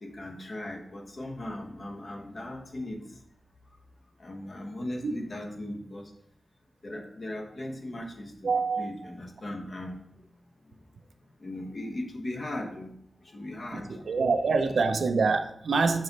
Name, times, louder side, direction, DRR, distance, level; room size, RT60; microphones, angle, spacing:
voice 1, 0.0-3.2 4.2-6.1 6.8-8.5 8.8-10.0 11.4-12.9 13.2-14.2 14.6-14.7, left 1 dB, 45° left, 1 dB, 1.1 m, -38 dB
voice 2, 8.4-8.9 13.7-16.0, right 4 dB, 80° right, 8 dB, 0.5 m, -26 dB
6.7 x 4.0 x 4.1 m, 0.73 s
wide cardioid pair, 115°, 0 cm